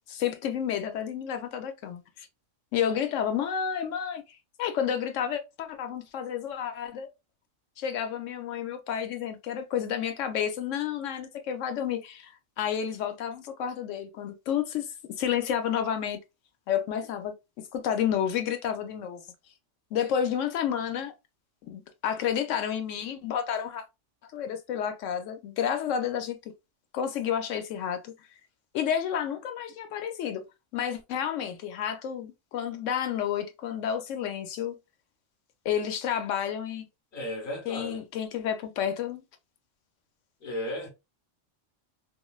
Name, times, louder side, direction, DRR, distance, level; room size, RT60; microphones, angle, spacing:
voice 1, 0.1-2.3 2.7-4.2 4.6-7.1 7.8-14.9 15.2-16.2 16.7-19.2 19.9-21.1 21.7-23.8 24.3-26.4 26.9-28.1 28.7-30.4 30.7-34.7 35.6-36.9 37.7-39.2, left 9 dB, 80° left, 1.0 m, -30 dB
voice 2, 37.1-38.0 40.4-40.9, left 1 dB, 45° left, 1.1 m, -34 dB
3.0 x 2.5 x 2.3 m
omnidirectional pair, 1.3 m